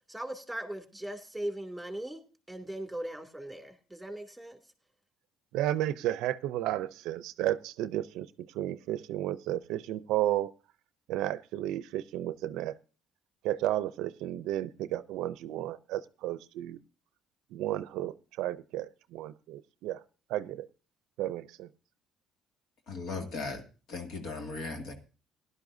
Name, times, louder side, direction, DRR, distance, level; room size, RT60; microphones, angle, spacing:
voice 1, 0.1-2.2 2.5-4.6, right 1 dB, 5° right, 2.4 m, -39 dB
voice 2, 5.5-10.5 11.1-12.7 13.4-16.8 17.5-20.0 20.3-20.7 21.2-21.7, right 13 dB, 85° right, 0.5 m, -33 dB
voice 3, 22.9-23.6 23.9-24.9, left 3 dB, 70° left, 2.1 m, -37 dB
17.0 x 11.5 x 2.6 m
cardioid pair, 90°, 0 cm